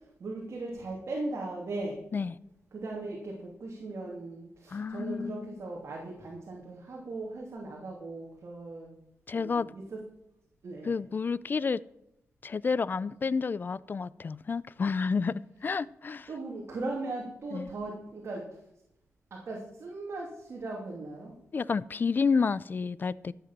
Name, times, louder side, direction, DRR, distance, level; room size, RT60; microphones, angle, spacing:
voice 1, 0.2-2.0 2.7-8.9 9.3-10.0 10.6-10.9 16.3-18.4 19.3-21.3, right 2 dB, 60° right, -2 dB, 3.0 m, -38 dB
voice 2, 4.7-5.6 9.3-9.7 10.8-11.8 12.4-16.3 17.5-17.7 21.5-23.3, left 5 dB, 40° left, 19 dB, 0.4 m, -30 dB
14.0 x 8.1 x 7.4 m, 0.79 s
wide cardioid pair, 125°, 5 cm